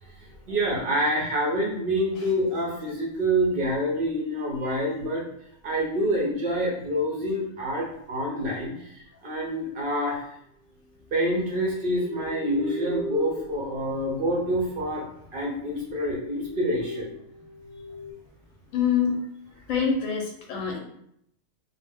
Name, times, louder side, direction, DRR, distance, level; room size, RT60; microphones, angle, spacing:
voice 1, 0.0-5.3 5.6-10.3 11.1-15.1 15.3-17.1, equal, 60° right, -2 dB, 0.6 m, -27 dB
sound 1, 11.3-15.0 15.6-15.7 16.0-18.1, equal, 90° right, 1.1 m, -38 dB
voice 2, 18.7-19.2 19.7-20.8, left 7 dB, 75° left, 0 dB, 0.9 m, -25 dB
2.5 x 2.0 x 3.3 m, 0.73 s
omnidirectional pair, 1.5 m